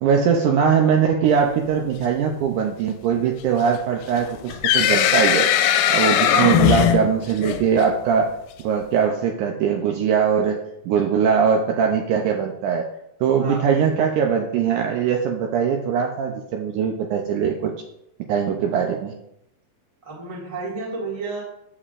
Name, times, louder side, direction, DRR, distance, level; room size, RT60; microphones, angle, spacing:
voice 1, 0.0-5.5 5.9-8.3 8.6-10.6 10.9-12.9 13.2-17.7 18.3-19.1, right 7 dB, 80° right, 2 dB, 1.9 m, -21 dB
sound 1, 4.2-7.8, left 10 dB, 85° left, 2.3 m, -19 dB
voice 2, 6.2-6.6 13.4-13.7 18.6-18.7 20.0-21.4, right 4 dB, 20° right, -4 dB, 0.9 m, -30 dB
8.6 x 7.0 x 2.5 m, 0.80 s
omnidirectional pair, 4.1 m